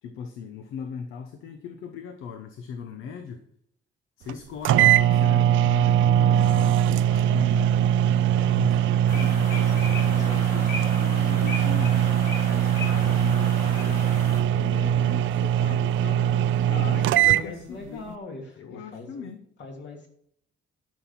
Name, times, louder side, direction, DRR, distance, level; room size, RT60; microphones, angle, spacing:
voice 1, 0.0-3.5 4.2-12.0 12.4-14.0 14.5-18.1 18.6-19.4, left 6 dB, 85° left, 7 dB, 1.0 m, -39 dB
sound 1, 4.3-4.4 4.7-17.5, right 10 dB, 75° right, 0.4 m, -21 dB
sound 2, 9.1-14.4, left 3 dB, 50° left, 4.8 m, -36 dB
voice 2, 10.2-10.5 16.7-19.3 19.6-20.1, left 3 dB, 65° left, 1 dB, 3.0 m, -41 dB
12.5 x 6.3 x 5.9 m, 0.67 s
cardioid pair, 90°, 20 cm